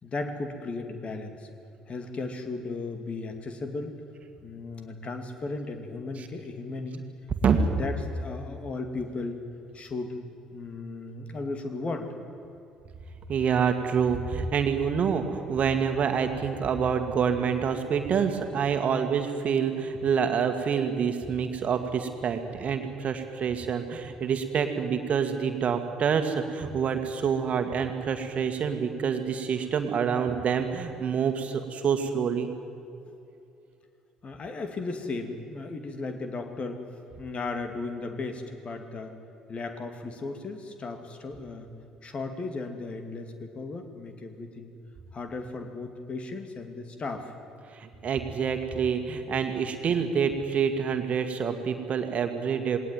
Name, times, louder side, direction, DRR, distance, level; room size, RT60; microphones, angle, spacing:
voice 1, 0.0-1.5 1.9-4.0 4.4-7.1 7.5-9.4 9.7-10.2 10.5-12.1 34.2-36.8 37.2-39.1 39.5-41.7 42.0-44.7 45.1-47.3, left 3 dB, 35° left, 6 dB, 2.6 m, -35 dB
voice 2, 7.3-7.6 13.3-32.5 47.7-52.8, right 6 dB, 45° right, 7 dB, 2.0 m, -27 dB
20.5 x 18.5 x 9.3 m, 2.7 s
figure-of-eight pair, 50°, 3 cm